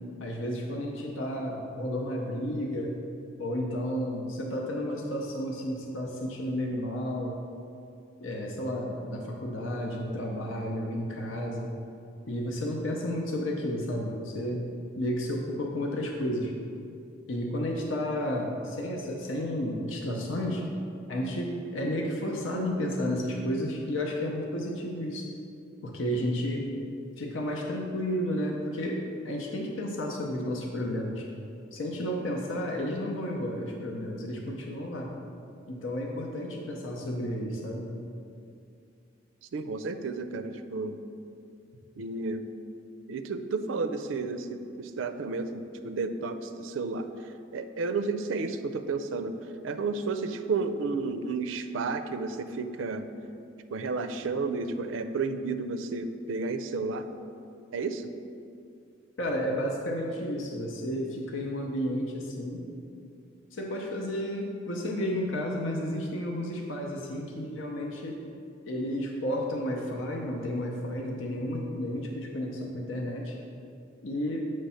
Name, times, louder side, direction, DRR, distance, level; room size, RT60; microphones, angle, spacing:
voice 1, 0.2-3.0 3.4-7.4 8.2-11.7 12.3-14.7 14.9-16.5 17.3-20.6 21.1-25.3 25.8-26.7 27.2-31.3 31.7-35.1 35.7-38.0 59.2-62.7 63.5-68.2 68.6-73.4 74.0-74.5, equal, 90° left, 0 dB, 0.7 m, -32 dB
voice 2, 39.5-41.0 42.0-42.4 43.1-47.1 47.5-49.4 49.6-53.1 53.7-57.1 57.7-58.1, right 4 dB, 85° right, 9 dB, 0.4 m, -32 dB
8.1 x 3.2 x 5.6 m, 2.5 s
head